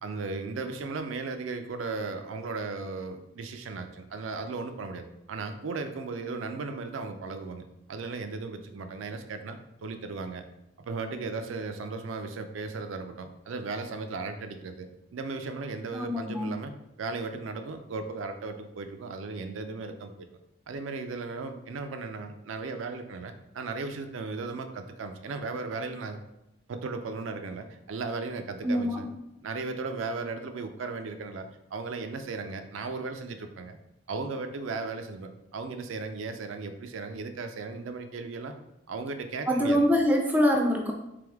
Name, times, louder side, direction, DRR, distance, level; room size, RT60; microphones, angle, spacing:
voice 1, 0.0-10.4 10.8-16.7 17.0-20.3 20.7-26.2 26.7-29.1 29.4-33.8 34.1-38.5 38.9-39.9, right 3 dB, 85° right, 7 dB, 0.4 m, -36 dB
voice 2, 15.9-16.5 28.6-29.0 39.5-40.9, equal, 10° right, 2 dB, 0.4 m, -24 dB
3.4 x 3.4 x 3.4 m, 0.88 s
head